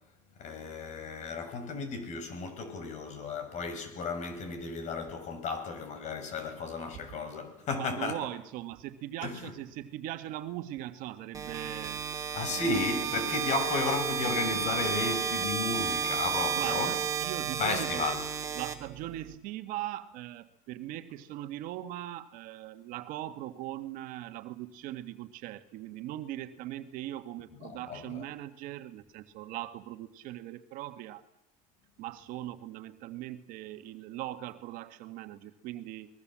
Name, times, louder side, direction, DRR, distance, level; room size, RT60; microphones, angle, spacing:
voice 1, 0.4-8.2 9.2-9.5 12.3-17.0 17.6-18.2 27.6-28.2, left 4 dB, 50° left, 6.0 m, -34 dB
voice 2, 7.8-12.0 12.6-12.8 16.6-17.0 17.2-18.0 18.5-31.2 32.0-36.1, right 14 dB, 60° right, 1.7 m, -40 dB
sound 1, 11.3-19.4, right 7 dB, 20° right, 2.8 m, -32 dB
29.0 x 21.0 x 7.5 m
supercardioid pair, 115°, 16 cm